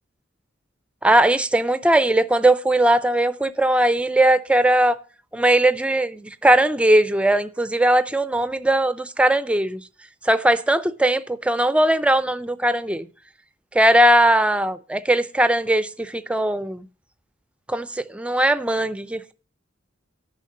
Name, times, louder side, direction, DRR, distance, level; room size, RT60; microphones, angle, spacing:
voice 1, 1.0-5.0 5.3-9.8 10.2-13.1 13.7-16.8 17.7-19.3, right 1 dB, 5° right, 0.5 m, -19 dB
10.5 x 5.8 x 6.6 m
head